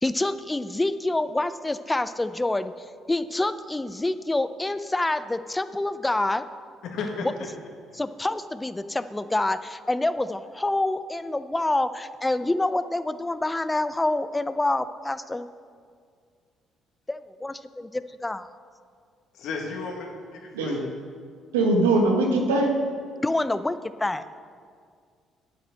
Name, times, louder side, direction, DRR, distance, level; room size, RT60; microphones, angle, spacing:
voice 1, 0.0-2.7 3.1-6.4 7.9-15.5 17.1-18.5 23.2-24.2, left 2 dB, 15° left, 13 dB, 0.5 m, -27 dB
voice 2, 6.9-7.5 19.3-20.9, left 4 dB, 70° left, 1 dB, 1.8 m, -34 dB
voice 3, 21.5-22.8, right 2 dB, 90° right, 2 dB, 1.2 m, -21 dB
9.4 x 7.5 x 6.2 m, 2.1 s
hypercardioid pair, 55°, 0 cm